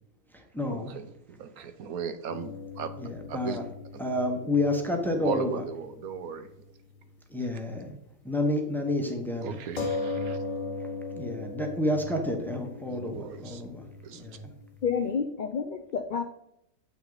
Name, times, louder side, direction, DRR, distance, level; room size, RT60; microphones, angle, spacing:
voice 1, 0.3-0.9 3.0-3.7 4.0-5.6 7.3-8.0 8.2-9.6 10.8-14.5, left 1 dB, ahead, 3 dB, 0.9 m, -30 dB
voice 2, 0.9-2.9 3.3-3.6 5.2-6.5 9.4-10.4 12.9-13.6 14.0-14.2, right 7 dB, 75° right, 9 dB, 1.2 m, -36 dB
sound 1, 2.3-6.2 6.4-6.5 9.8-15.0, left 3 dB, 30° left, 0.8 m, -38 dB
voice 3, 14.8-16.2, left 6 dB, 85° left, 6 dB, 0.4 m, -29 dB
8.0 x 5.8 x 3.9 m, 0.79 s
omnidirectional pair, 1.6 m